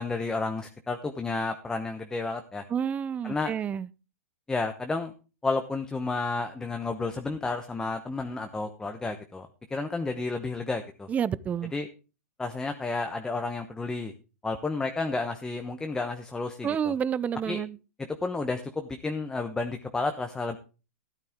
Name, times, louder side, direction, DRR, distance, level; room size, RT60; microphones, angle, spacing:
voice 1, 0.0-2.6 3.2-3.5 4.5-5.1 5.4-11.1 11.7-11.9 12.4-14.1 14.4-16.9 17.5-17.6 18.2-20.6, left 3 dB, 10° left, 0.9 m, -31 dB
voice 2, 2.7-3.9 11.1-11.7 16.6-17.8, right 8 dB, 20° right, 0.5 m, -29 dB
12.5 x 11.5 x 3.6 m
hypercardioid pair, 130°, 8 cm